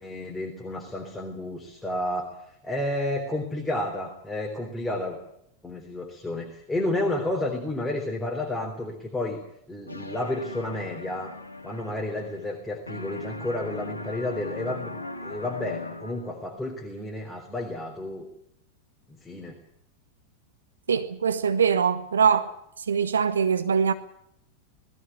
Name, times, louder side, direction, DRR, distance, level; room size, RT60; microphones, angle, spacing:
voice 1, 0.0-5.2 5.6-9.4 9.7-11.4 11.6-14.9 15.2-18.3 19.1-19.6, left 1 dB, 10° left, 3.4 m, -31 dB
sound 1, 9.9-12.6 12.9-16.5, left 2 dB, 75° left, 2.4 m, -39 dB
voice 2, 20.9-22.5 22.8-23.9, right 6 dB, 70° right, 1.0 m, -23 dB
19.5 x 16.0 x 9.8 m
figure-of-eight pair, 90°, 0 cm